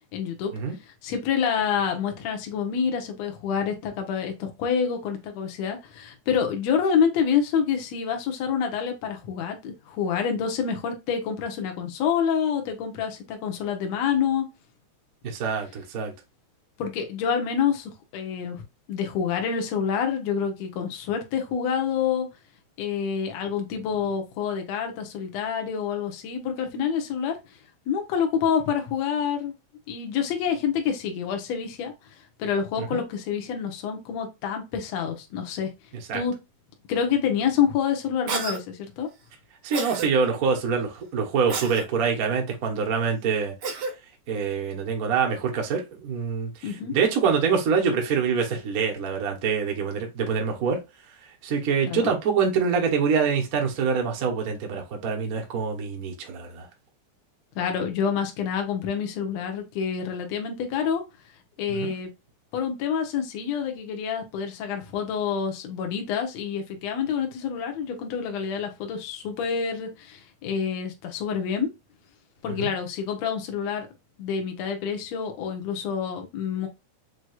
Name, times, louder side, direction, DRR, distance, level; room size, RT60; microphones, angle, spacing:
voice 1, 0.1-0.5 1.0-14.5 16.8-18.6 18.9-22.3 22.8-27.4 27.9-29.5 29.9-31.9 32.4-35.7 36.1-36.3 36.9-39.1 46.6-47.0 51.9-52.1 57.6-61.0 61.6-62.1 62.5-71.7 72.4-73.9 74.2-76.7, left 7 dB, 65° left, 2.1 m, -27 dB
voice 2, 15.2-16.1 32.8-33.0 36.1-36.2 39.6-43.5 44.3-50.8 51.4-56.7 61.7-61.9 72.5-72.7, right 6 dB, 60° right, 0.9 m, -25 dB
Cough, 38.3-38.6 39.7-40.1 41.5-41.9 43.6-43.9, right 4 dB, 85° right, 0.9 m, -30 dB
6.2 x 3.0 x 2.3 m
omnidirectional pair, 3.5 m